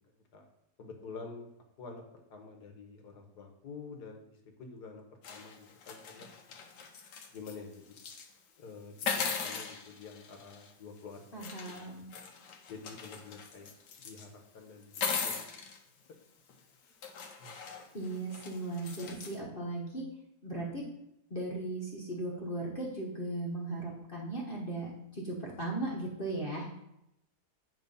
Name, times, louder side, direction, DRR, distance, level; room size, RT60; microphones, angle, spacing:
voice 1, 0.8-1.5 1.8-6.3 7.3-8.0 8.6-11.9 12.7-13.7 14.0-15.4 16.8-17.0 17.4-17.6, left 4 dB, 75° left, 3 dB, 1.6 m, -48 dB
sound 1, 5.2-7.6 7.9-8.3 9.0-10.7 11.4-14.2 14.8-15.8 16.5-16.6 17.0-19.4, left 5 dB, 90° left, 1.5 m, -39 dB
voice 2, 11.3-12.1 17.9-20.1 20.4-20.9 21.3-26.7, right 2 dB, 35° left, -3 dB, 1.1 m, -37 dB
9.1 x 3.1 x 5.3 m, 0.81 s
omnidirectional pair, 1.8 m